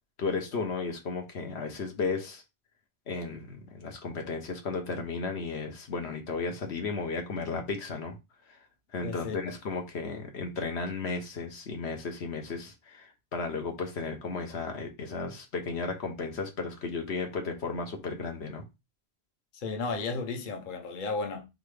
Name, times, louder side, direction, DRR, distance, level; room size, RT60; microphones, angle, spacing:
voice 1, 0.2-2.4 3.1-8.2 8.5-8.6 8.9-18.6, left 4 dB, 80° left, 1.2 m, -34 dB
voice 2, 9.0-9.4 19.5-21.5, left 4 dB, 55° left, 0.9 m, -33 dB
3.9 x 3.5 x 3.3 m
omnidirectional pair, 1.1 m